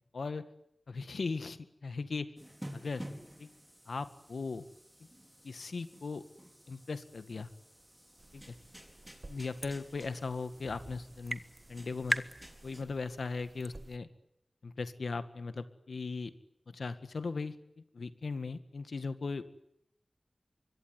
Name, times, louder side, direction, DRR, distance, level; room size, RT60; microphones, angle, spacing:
voice 1, 0.1-0.5 0.9-2.3 2.7-3.1 3.4-3.5 3.9-4.7 5.4-6.2 6.7-7.5 8.3-8.6 9.3-11.4 11.7-12.2 12.6-14.1 14.6-16.3 16.7-19.4, left 4 dB, 85° left, 11 dB, 1.9 m, -38 dB
sound 1, 2.4-12.8, equal, 5° right, 5.1 m, -52 dB
sound 2, 8.2-14.0, right 2 dB, 30° right, 1.4 m, -42 dB
25.0 x 23.0 x 9.7 m, 0.75 s
wide cardioid pair, 80°, 0 cm